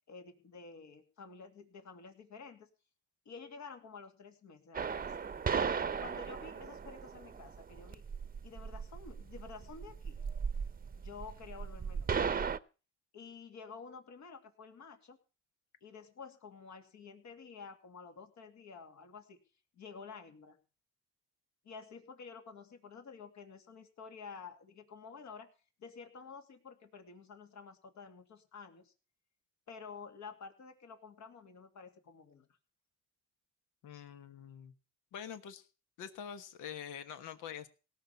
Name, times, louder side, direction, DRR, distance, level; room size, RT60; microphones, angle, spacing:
voice 1, 0.1-2.7 3.2-5.3 6.0-8.0 8.4-10.2 11.0-12.3 13.1-15.2 15.8-19.4 19.8-20.6 21.6-25.5 25.8-28.9 29.7-32.5, left 5 dB, 65° left, 5 dB, 2.7 m, -51 dB
sound 1, 4.7-12.6, right 6 dB, 30° right, 0.8 m, -36 dB
voice 2, 33.8-34.7 35.1-35.7 36.0-37.7, left 8 dB, 85° left, 10 dB, 1.4 m, -45 dB
18.0 x 6.4 x 8.4 m, 0.35 s
cardioid pair, 90°, 30 cm